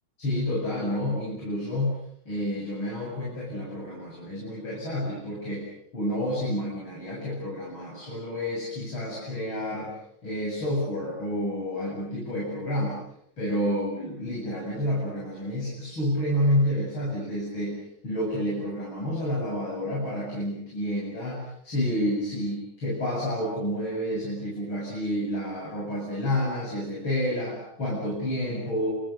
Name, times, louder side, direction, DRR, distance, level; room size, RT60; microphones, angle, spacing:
voice 1, 0.2-2.0 2.3-5.7 5.9-10.0 10.2-13.0 13.4-28.9, left 1 dB, 70° left, -4 dB, 8.9 m, -29 dB
28.5 x 27.0 x 6.6 m, 0.71 s
omnidirectional pair, 2.3 m